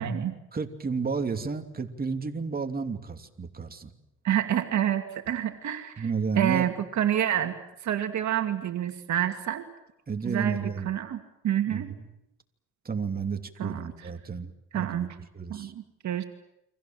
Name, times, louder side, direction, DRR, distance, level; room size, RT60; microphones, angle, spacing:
voice 1, 0.0-0.4 4.2-6.0 6.4-7.5 7.8-9.6 10.2-11.9 13.6-13.8 14.7-15.1 15.5-16.2, right 10 dB, 70° right, 7 dB, 2.5 m, -28 dB
voice 2, 0.5-3.9 6.0-6.7 10.1-10.9 11.7-12.1 12.8-15.7, right 5 dB, 30° right, 6 dB, 2.9 m, -32 dB
30.0 x 25.0 x 7.6 m, 0.84 s
cardioid pair, 90°, 30 cm